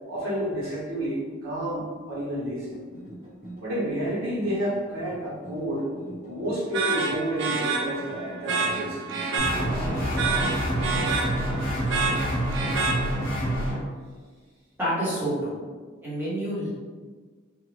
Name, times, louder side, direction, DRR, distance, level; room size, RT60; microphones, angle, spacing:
voice 1, 0.1-2.8 3.6-5.9 6.2-9.0, equal, 85° right, -7 dB, 1.0 m, -30 dB
sound 1, 2.6-10.2, right 1 dB, 35° right, 1.1 m, -44 dB
sound 2, 6.7-13.5, right 4 dB, 60° right, 0.3 m, -29 dB
sound 3, 9.4-13.8, equal, 45° left, 0.9 m, -27 dB
voice 2, 14.8-15.6 16.0-16.7, equal, 10° right, -12 dB, 1.1 m, -28 dB
2.4 x 2.4 x 3.2 m, 1.5 s
head